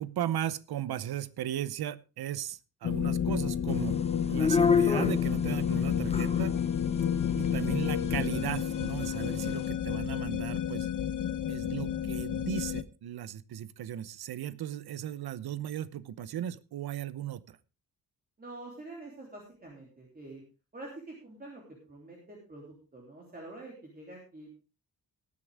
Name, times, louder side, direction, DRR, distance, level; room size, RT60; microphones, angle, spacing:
voice 1, 0.0-4.0 4.3-6.6 7.3-10.9 11.5-17.6, right 11 dB, 90° right, 17 dB, 0.8 m, -36 dB
sound 1, 2.8-12.8, left 9 dB, 55° left, 0.9 m, -30 dB
sound 2, 3.7-9.7, left 5 dB, 15° left, 0.6 m, -32 dB
voice 2, 18.4-20.4 20.7-21.6 21.9-24.5, right 2 dB, 25° right, -1 dB, 3.1 m, -46 dB
19.5 x 8.5 x 3.5 m, 0.32 s
wide cardioid pair, 180°, 37 cm